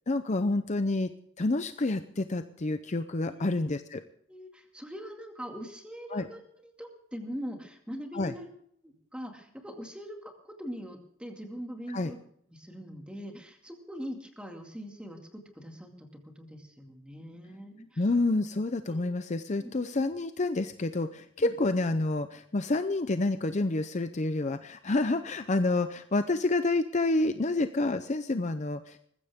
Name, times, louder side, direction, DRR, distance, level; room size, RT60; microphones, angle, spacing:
voice 1, 0.1-1.1 1.4-4.0 6.1-6.3 8.1-8.3 11.9-12.1 18.0-29.0, left 2 dB, 35° left, 10 dB, 0.6 m, -28 dB
voice 2, 4.3-8.5 8.8-12.2 12.5-18.1 18.9-19.0 19.6-19.7 21.4-21.6, equal, 5° right, 3 dB, 2.3 m, -42 dB
20.5 x 15.0 x 3.6 m, 0.67 s
head